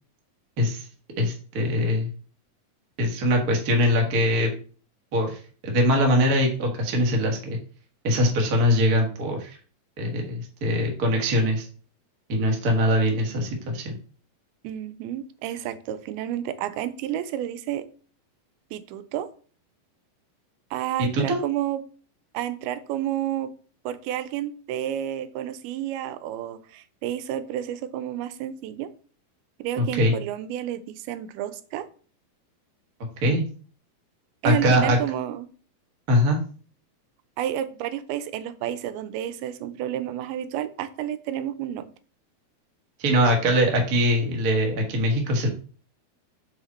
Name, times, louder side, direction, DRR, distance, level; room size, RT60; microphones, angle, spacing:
voice 1, 1.2-2.1 3.0-4.5 5.1-7.6 8.0-9.6 10.0-11.7 12.3-14.0 21.1-21.4 29.8-30.1 33.2-33.4 34.4-35.0 36.1-36.4 43.0-45.5, equal, 70° right, 0.9 m, -22 dB
voice 2, 14.6-17.9 18.7-19.3 20.7-21.8 22.3-23.5 23.9-28.9 29.6-31.9 34.4-35.5 37.4-41.9, right 11 dB, 90° right, 2.5 m, -30 dB
5.9 x 5.0 x 4.1 m
omnidirectional pair, 4.3 m